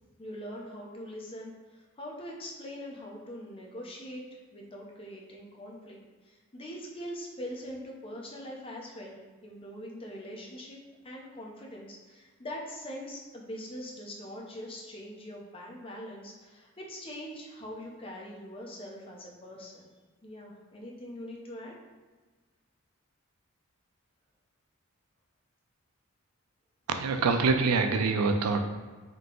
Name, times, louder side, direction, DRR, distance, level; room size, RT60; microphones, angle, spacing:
voice 1, 0.2-4.2 4.5-10.8 11.0-19.9 20.2-21.8, equal, 25° left, -1 dB, 0.6 m, -42 dB
voice 2, 26.9-28.6, right 4 dB, 90° right, 6 dB, 0.4 m, -25 dB
3.7 x 2.8 x 3.7 m, 1.4 s
head